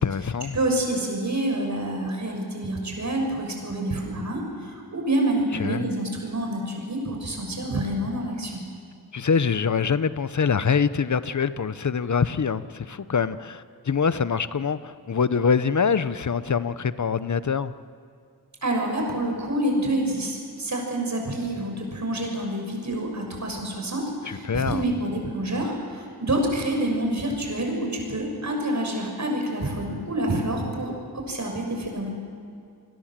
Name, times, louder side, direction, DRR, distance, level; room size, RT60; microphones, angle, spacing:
voice 1, 0.0-0.5 5.6-5.9 9.1-17.7 24.3-24.8, left 6 dB, 45° left, 14 dB, 0.9 m, -24 dB
voice 2, 0.5-8.6 18.6-32.1, right 1 dB, 45° right, 2 dB, 6.4 m, -27 dB
28.0 x 20.0 x 7.6 m, 2.3 s
wide cardioid pair, 85°, 39 cm